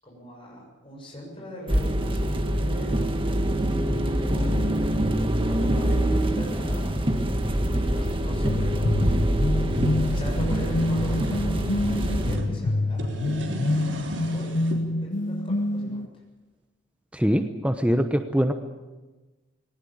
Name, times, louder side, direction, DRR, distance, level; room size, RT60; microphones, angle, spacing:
voice 1, 0.0-4.7 5.2-7.1 7.6-13.2 14.3-14.5 15.0-16.1, equal, 30° left, -2 dB, 7.2 m, -41 dB
sound 1, 1.7-12.4, right 1 dB, 30° right, 1.8 m, -25 dB
sound 2, 8.4-16.1, left 2 dB, 70° left, 0.8 m, -27 dB
sound 3, 9.7-12.5 12.9-14.8, right 1 dB, 70° right, 3.6 m, -36 dB
voice 2, 17.1-18.5, equal, 5° right, 6 dB, 1.0 m, -23 dB
20.0 x 19.0 x 8.8 m, 1.2 s
head